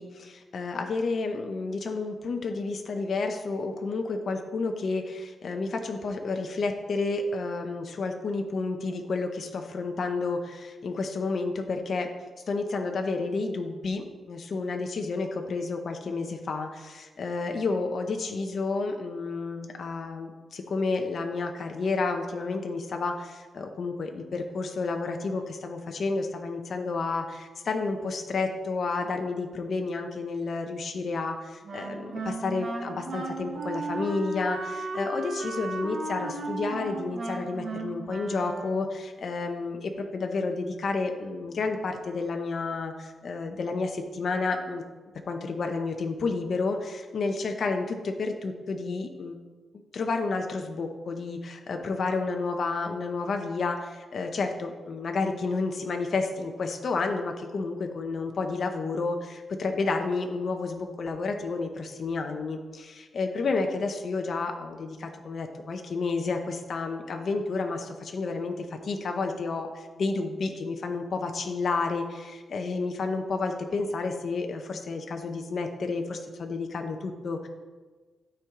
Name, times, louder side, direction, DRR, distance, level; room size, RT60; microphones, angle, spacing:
voice 1, 0.0-12.1 12.5-44.8 45.3-49.4 49.9-77.5, left 3 dB, 45° left, 4 dB, 0.6 m, -31 dB
Wind instrument woodwind instrument, 31.6-39.0, right 2 dB, 45° right, 1.0 m, -35 dB
13.0 x 4.6 x 3.6 m, 1.4 s
wide cardioid pair, 170°, 0 cm